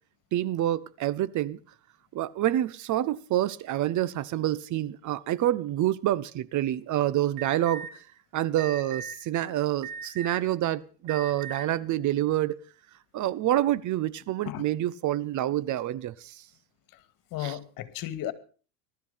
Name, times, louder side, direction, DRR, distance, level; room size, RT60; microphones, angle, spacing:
voice 1, 0.3-1.6 2.1-7.9 8.3-12.5 13.1-16.4 17.4-17.6, right 13 dB, 45° right, 1.0 m, -27 dB
Alarm, 7.4-7.9 8.6-9.1 9.8-10.5 11.0-11.6, right 6 dB, 80° right, 5.8 m, -38 dB
voice 2, 17.3-18.3, left 13 dB, 55° left, 2.4 m, -34 dB
19.0 x 13.0 x 5.7 m
supercardioid pair, 125°, 41 cm